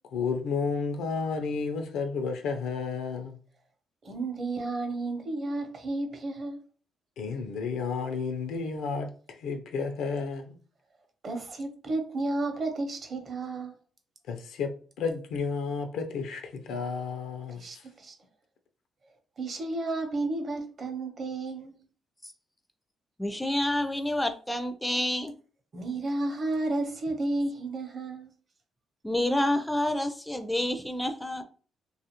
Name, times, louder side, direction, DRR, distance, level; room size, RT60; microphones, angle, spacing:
voice 1, 0.1-3.4 7.2-9.1 9.4-10.6 14.3-14.7 15.0-17.6, left 5 dB, 85° left, 0.5 m, -31 dB
voice 2, 4.0-6.6 11.2-13.7 17.6-18.1 19.4-21.8 25.7-28.3, right 2 dB, 45° right, 0.8 m, -32 dB
voice 3, 23.2-25.3 29.0-31.4, left 1 dB, 5° left, 0.4 m, -28 dB
2.6 x 2.4 x 2.9 m
cardioid pair, 90°, 0 cm